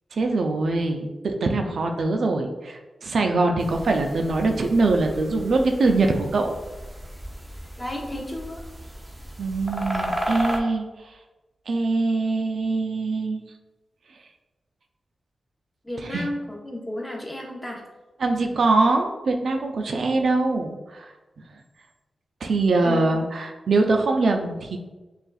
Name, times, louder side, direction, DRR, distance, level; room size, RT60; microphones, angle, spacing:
voice 1, 0.1-6.5 9.4-10.8 11.7-13.4 16.0-16.2 18.2-21.1 22.4-24.8, right 3 dB, 70° right, 3 dB, 0.4 m, -23 dB
sound 1, 3.6-10.6, equal, 10° right, 0.6 m, -34 dB
voice 2, 7.8-8.6 15.8-17.8 22.8-23.3, left 1 dB, 10° left, -1 dB, 0.9 m, -33 dB
6.4 x 2.4 x 2.4 m, 1.1 s
cardioid pair, 70°, 0 cm